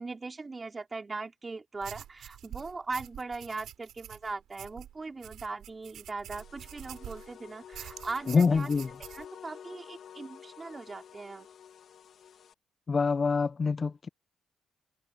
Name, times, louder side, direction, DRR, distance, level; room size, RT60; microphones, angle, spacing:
voice 1, 0.0-8.7 9.1-11.5, right 3 dB, 25° right, 4.8 m, -39 dB
sound 1, 1.8-7.3 7.7-9.3, right 11 dB, 75° right, 4.6 m, -46 dB
sound 2, 6.3-12.5, left 8 dB, 60° left, 2.7 m, -50 dB
voice 2, 8.3-8.9 12.9-14.1, left 4 dB, 40° left, 1.0 m, -25 dB
cardioid pair, 90°, 0 cm